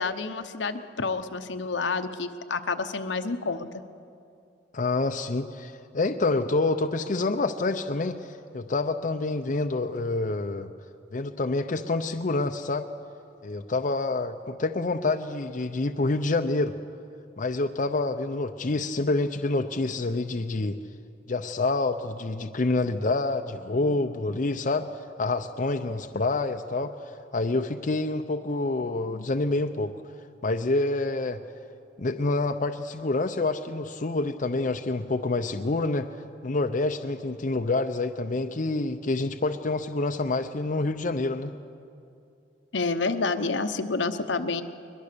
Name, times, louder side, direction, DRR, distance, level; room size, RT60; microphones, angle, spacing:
voice 1, 0.0-3.7 42.7-44.6, left 4 dB, 75° left, 8 dB, 0.9 m, -29 dB
voice 2, 4.7-10.7 11.1-12.9 13.4-16.7 17.4-20.8 21.3-24.9 25.2-26.9 27.3-29.9 30.4-31.4 32.0-36.1 36.4-41.5, left 2 dB, 45° left, 6 dB, 0.6 m, -27 dB
21.5 x 21.5 x 6.8 m, 2.6 s
head